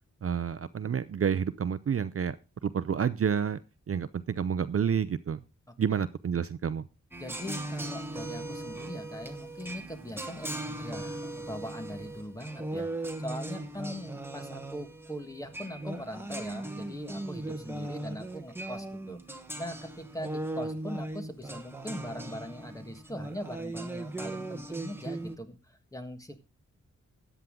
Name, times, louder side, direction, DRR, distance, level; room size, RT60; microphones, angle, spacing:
voice 1, 0.2-2.4 2.6-3.6 3.9-5.4 5.8-6.8, right 7 dB, 50° right, 15 dB, 0.5 m, -29 dB
voice 2, 5.7-6.0 7.2-19.2 19.6-26.4, equal, 10° left, 8 dB, 1.5 m, -41 dB
sound 1, 7.1-25.4, right 2 dB, 10° right, 1.3 m, -38 dB
13.5 x 9.2 x 3.7 m, 0.28 s
wide cardioid pair, 130°, 30 cm